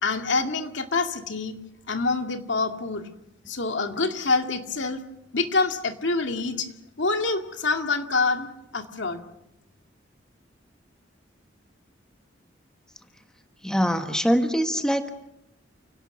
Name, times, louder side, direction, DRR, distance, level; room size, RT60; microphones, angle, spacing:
voice 1, 0.0-1.6 1.9-3.0 3.5-5.0 5.3-6.7 7.0-8.5 8.7-9.2, left 3 dB, 75° left, 5 dB, 2.2 m, -26 dB
voice 2, 13.6-15.1, equal, 5° left, 6 dB, 1.4 m, -23 dB
29.5 x 17.5 x 7.1 m, 0.86 s
head